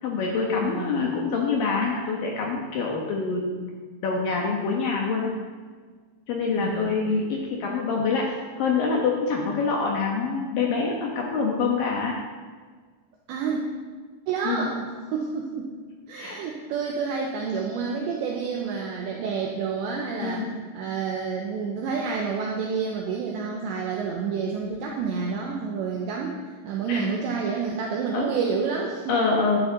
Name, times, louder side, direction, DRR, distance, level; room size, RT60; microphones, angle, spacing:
voice 1, 0.0-3.8 4.0-5.3 6.3-8.3 8.6-12.1 14.4-14.7 16.2-16.4 20.2-20.5 26.9-27.0 28.1-28.3 29.1-29.6, left 4 dB, 75° left, -1 dB, 2.0 m, -25 dB
voice 2, 0.6-1.1 6.6-7.0 13.3-13.6 14.3-15.7 16.1-20.5 20.7-29.1, right 5 dB, 75° right, 0 dB, 2.9 m, -29 dB
13.5 x 11.0 x 4.0 m, 1.5 s
omnidirectional pair, 5.8 m